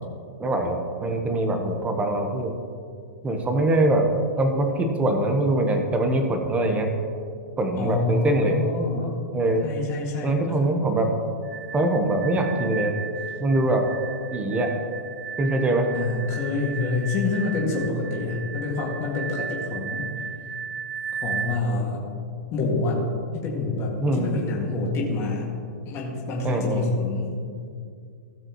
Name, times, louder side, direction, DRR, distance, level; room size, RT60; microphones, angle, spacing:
voice 1, 0.4-2.6 3.2-4.1 4.4-6.9 7.6-8.6 9.3-9.7 10.2-11.1 11.7-12.9 13.4-13.9 14.3-14.7 15.4-15.9 24.0-24.3 26.4-26.9, right 2 dB, 15° right, 4 dB, 1.2 m, -23 dB
voice 2, 7.8-9.1 9.6-10.6 15.9-20.5 21.2-22.0 22.5-23.0 23.3-25.5 25.8-27.4, left 3 dB, 30° left, -4 dB, 2.1 m, -27 dB
sound 1, 11.4-21.6, right 7 dB, 80° right, 0.5 m, -35 dB
16.5 x 6.6 x 3.1 m, 2.3 s
hypercardioid pair, 135°, 9 cm